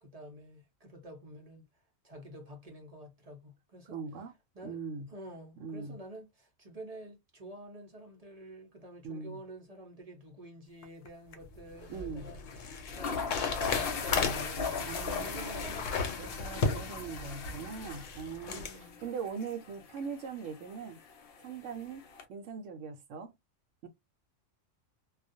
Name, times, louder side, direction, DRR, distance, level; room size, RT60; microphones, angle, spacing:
voice 1, 0.0-1.7 2.0-4.0 4.5-4.8 5.1-12.4 12.7-13.1 13.7-16.4 18.5-19.0, right 1 dB, 40° right, 0.5 m, -49 dB
voice 2, 3.9-4.3 4.6-5.1 5.6-6.0 9.0-9.4 11.9-12.3 14.9-15.8 16.2-21.0 21.4-22.0 22.3-23.3 23.8-23.9, right 5 dB, 70° right, 0.9 m, -41 dB
sound 1, 10.8-11.1 11.3-11.4 12.5-12.6 12.9-22.2, left 5 dB, 60° left, 0.7 m, -40 dB
sound 2, 11.4-18.8, left 5 dB, 75° left, 1.0 m, -35 dB
2.3 x 2.1 x 2.6 m
omnidirectional pair, 1.4 m